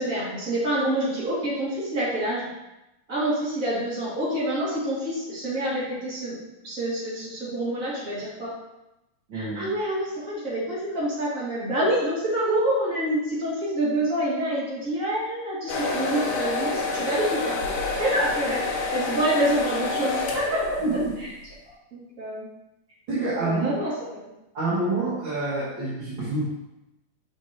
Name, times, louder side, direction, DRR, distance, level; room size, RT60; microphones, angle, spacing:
voice 1, 0.0-2.5 3.1-6.4 6.6-8.5 9.3-17.6 18.0-20.8 21.2-21.3 21.9-22.5 23.1-24.3, right 1 dB, 30° right, -8 dB, 2.1 m, -27 dB
voice 2, 9.3-9.7 20.8-21.1 23.1-23.8 24.5-26.5, right 2 dB, 60° right, -9 dB, 1.2 m, -27 dB
sound 1, 15.7-21.2, left 3 dB, 75° left, 2.5 m, -28 dB
6.4 x 5.4 x 2.9 m, 0.93 s
omnidirectional pair, 4.0 m